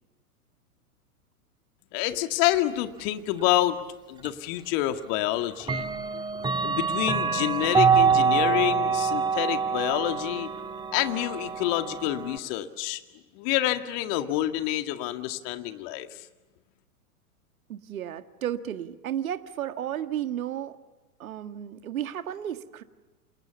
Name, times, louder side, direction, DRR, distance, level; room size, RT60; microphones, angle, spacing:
voice 1, 1.9-3.8 4.1-5.9 6.6-10.5 10.9-13.0 13.3-16.3, left 14 dB, 40° left, 8 dB, 2.1 m, -27 dB
Clock, 4.2-4.3 5.6-12.4, right 5 dB, 10° right, 1.8 m, -25 dB
voice 2, 17.7-20.8 21.2-22.8, right 10 dB, 65° right, 10 dB, 1.8 m, -33 dB
29.0 x 28.0 x 7.1 m, 1.2 s
figure-of-eight pair, 105°, 45 cm